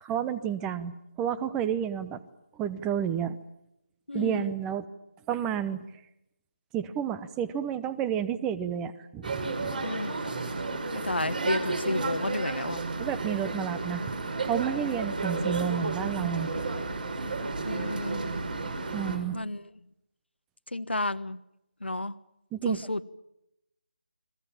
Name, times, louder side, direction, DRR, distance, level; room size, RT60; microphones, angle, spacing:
voice 1, 0.0-2.2 2.6-3.4 4.1-4.8 5.3-5.9 6.7-9.8 13.0-14.0 14.4-16.5 18.9-19.4 22.5-22.8, right 9 dB, 10° right, 14 dB, 0.9 m, -30 dB
voice 2, 4.1-4.5 9.8-10.5 10.9-12.8 17.6-18.3 19.3-19.7 20.7-21.4 21.8-22.1 22.6-23.0, left 2 dB, 75° left, 14 dB, 1.4 m, -32 dB
sound 1, 9.2-19.2, right 3 dB, 50° right, 5.9 m, -32 dB
30.0 x 22.0 x 7.4 m, 0.84 s
figure-of-eight pair, 155°, 6 cm